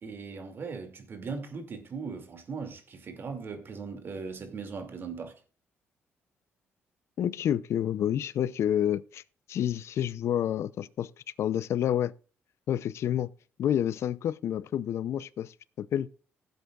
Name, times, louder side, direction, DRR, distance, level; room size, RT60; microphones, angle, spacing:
voice 1, 0.0-5.3, right 5 dB, 45° right, 2.5 m, -39 dB
voice 2, 7.2-9.2 9.5-11.1 11.4-12.1 12.7-13.3 13.6-16.1, left 10 dB, 65° left, 0.6 m, -29 dB
16.0 x 8.1 x 2.4 m
cardioid pair, 105°, 5 cm